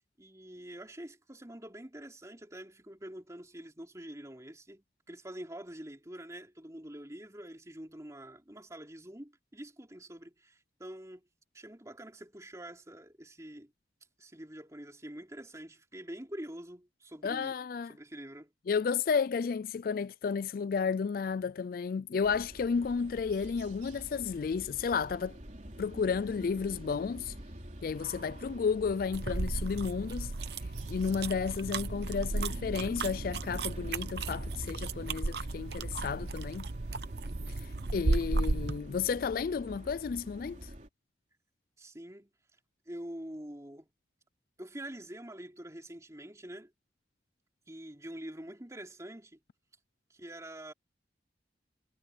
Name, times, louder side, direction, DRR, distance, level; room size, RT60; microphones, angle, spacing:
voice 1, 0.2-11.2 11.5-13.7 14.2-17.5 17.9-18.5 41.8-42.3 42.8-43.9 44.6-46.7 47.7-49.4 50.1-50.7, right 1 dB, 20° right, 3.3 m, -46 dB
voice 2, 17.2-17.9 18.7-25.4 25.8-27.3 27.8-30.3 30.9-36.7 37.9-40.7, left 5 dB, 55° left, 0.3 m, -32 dB
sound 1, 22.2-40.9, equal, 45° right, 3.5 m, -47 dB
sound 2, 29.1-38.8, right 3 dB, 65° right, 0.8 m, -34 dB
head